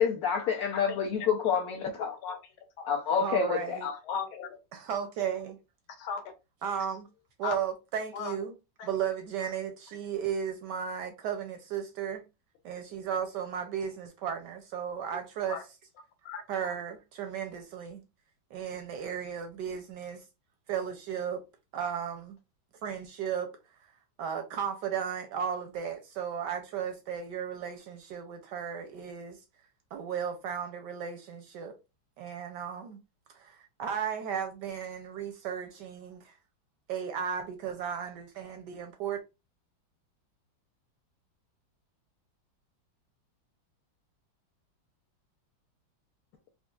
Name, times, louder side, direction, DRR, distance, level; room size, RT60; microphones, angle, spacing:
voice 1, 0.0-2.1 2.9-3.8, left 6 dB, 70° left, 0.9 m, -28 dB
voice 2, 0.7-1.3 2.0-2.9 3.8-4.6 6.0-6.2 7.4-7.7 8.1-8.4 8.8-8.9 15.5-15.6 16.2-16.8, left 6 dB, 90° left, 1.6 m, -38 dB
voice 3, 3.2-3.9 4.7-5.6 6.6-7.1 7.4-8.5 8.8-12.2 12.6-15.6 16.5-18.0 18.5-20.2 20.7-21.4 21.7-22.4 22.8-23.5 24.2-29.4 29.9-31.8 32.2-33.0 33.3-36.3 36.9-39.2, right 8 dB, 75° right, 1.0 m, -35 dB
4.3 x 2.6 x 2.3 m
omnidirectional pair, 2.2 m